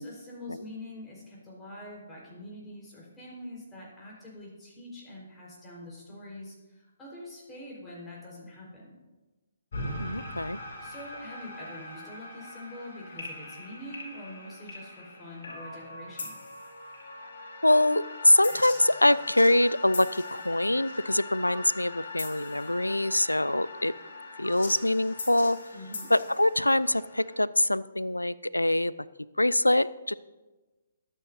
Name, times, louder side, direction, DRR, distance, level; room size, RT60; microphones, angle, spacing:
voice 1, 0.0-9.0 10.8-16.4 25.7-26.1, left 1 dB, 15° left, -5 dB, 4.5 m, -44 dB
sound 1, 9.7-27.4, left 2 dB, 55° left, 3.4 m, -41 dB
voice 2, 9.8-10.6 17.6-23.9 24.4-25.6 26.1-28.9 29.4-30.1, left 1 dB, 90° left, 19 dB, 0.4 m, -24 dB
22.0 x 8.9 x 2.7 m, 1.2 s
figure-of-eight pair, 130°, 0 cm